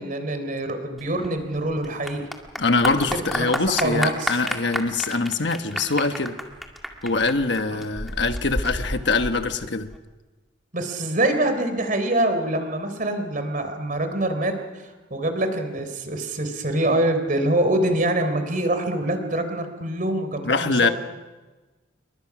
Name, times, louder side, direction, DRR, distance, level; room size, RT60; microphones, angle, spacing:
voice 1, 0.0-2.2 3.1-4.4 7.7-7.8 10.7-14.5 14.8-20.9, right 1 dB, 45° right, 7 dB, 3.8 m, -25 dB
Clapping / Applause, 1.0-10.0, equal, ahead, 2.1 m, -31 dB
voice 2, 2.6-6.4 7.0-9.9 20.4-20.9, left 3 dB, 60° left, 7 dB, 1.3 m, -23 dB
29.0 x 23.0 x 6.1 m, 1.2 s
head